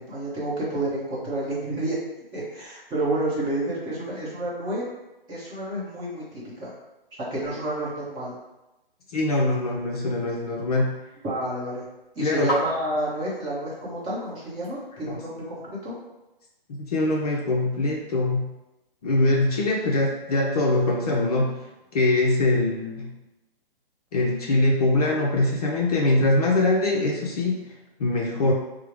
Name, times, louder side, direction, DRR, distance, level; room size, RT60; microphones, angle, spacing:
voice 1, 0.0-2.0 2.3-4.9 5.3-6.7 7.2-8.4 11.2-11.8 12.2-15.9, right 1 dB, 15° right, -7 dB, 0.7 m, -30 dB
voice 2, 9.1-11.0 12.2-12.5 15.1-15.2 16.7-18.5 19.0-21.7 21.9-23.1 24.1-27.6 28.0-28.5, left 2 dB, 40° left, -1 dB, 0.5 m, -23 dB
sound 1, 10.4-15.3, equal, 20° left, 1.2 m, -37 dB
4.4 x 2.0 x 3.1 m, 1.0 s
hypercardioid pair, 140°, 29 cm